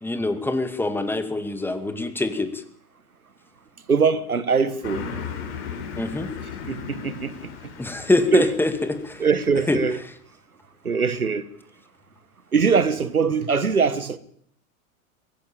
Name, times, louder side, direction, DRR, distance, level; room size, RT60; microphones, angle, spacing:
voice 1, 0.0-2.6 6.0-6.3 7.8-9.3 9.5-10.1, left 2 dB, 5° left, 2.3 m, -25 dB
voice 2, 3.9-5.2 6.7-7.4 8.3-8.4 9.2-10.0 10.8-11.5 12.5-14.2, right 5 dB, 85° right, 1.6 m, -22 dB
Car passing by, 4.8-9.8, left 6 dB, 55° left, 5.8 m, -36 dB
23.0 x 16.0 x 8.8 m
figure-of-eight pair, 90°, 42 cm